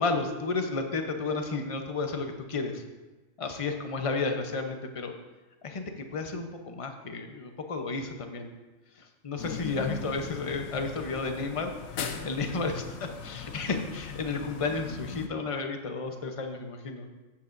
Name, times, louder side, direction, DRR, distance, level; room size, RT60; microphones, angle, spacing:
voice 1, 0.0-2.8 3.4-5.1 5.6-5.8 6.1-8.5 9.0-11.7 12.0-12.7 13.2-17.1, left 3 dB, 30° left, 4 dB, 0.8 m, -32 dB
sound 1, 9.4-15.3, left 6 dB, 85° left, 1.2 m, -39 dB
15.0 x 8.6 x 2.6 m, 1.1 s
omnidirectional pair, 1.4 m